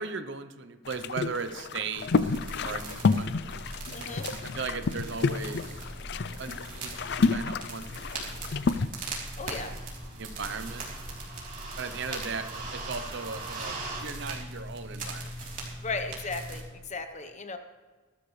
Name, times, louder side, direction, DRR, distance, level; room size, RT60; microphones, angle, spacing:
voice 1, 0.0-3.6 4.5-5.9 6.4-8.9 10.1-10.9 11.7-15.3, right 5 dB, 60° right, 10 dB, 0.8 m, -38 dB
sound 1, 0.8-8.9, left 4 dB, 55° left, 0.5 m, -30 dB
sound 2, 1.9-16.6, right 2 dB, 40° right, 3.4 m, -39 dB
voice 2, 3.9-4.3 9.4-9.7 12.1-12.2 15.4-15.5 15.8-17.6, left 3 dB, 35° left, 7 dB, 1.0 m, -36 dB
20.0 x 12.5 x 3.3 m, 1.4 s
head